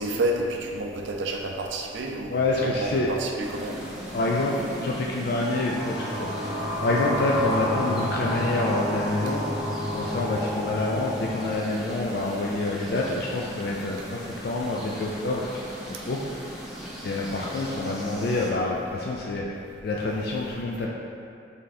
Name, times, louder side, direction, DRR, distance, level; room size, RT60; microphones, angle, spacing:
voice 1, 0.0-3.8, right 1 dB, 85° right, 2 dB, 0.5 m, -29 dB
voice 2, 2.3-3.1 4.1-6.3 6.8-9.5 9.9-16.2 17.0-19.4 19.8-20.9, left 2 dB, 55° left, -3 dB, 0.3 m, -27 dB
sound 1, 3.4-18.5, equal, ahead, 0.6 m, -38 dB
sound 2, 5.1-12.6, equal, 85° left, 1.0 m, -31 dB
3.6 x 3.3 x 4.1 m, 2.4 s
head